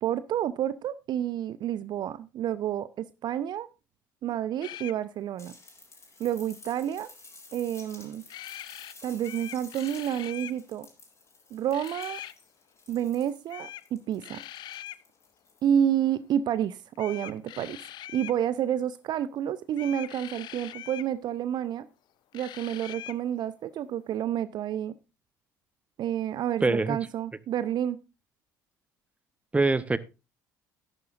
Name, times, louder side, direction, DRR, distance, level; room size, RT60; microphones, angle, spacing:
voice 1, 0.0-3.7 4.2-5.5 6.2-7.1 7.5-8.2 9.0-10.9 11.5-12.2 12.9-14.4 15.6-17.8 18.1-21.9 22.3-24.9 26.0-28.0, right 10 dB, 50° right, 16 dB, 0.6 m, -29 dB
sound 1, 4.6-5.0 8.3-8.9 9.2-10.6 11.7-12.3 13.5-13.9 14.2-15.0 16.9-18.4 19.7-21.1 22.3-23.2, left 13 dB, 50° left, 0.5 m, -42 dB
sound 2, 5.4-15.8 17.2-17.3, left 3 dB, 30° left, 5.2 m, -52 dB
voice 2, 26.6-27.0 29.5-30.0, right 3 dB, 15° right, 17 dB, 0.8 m, -23 dB
13.0 x 11.0 x 2.5 m, 0.28 s
figure-of-eight pair, 55°, 10 cm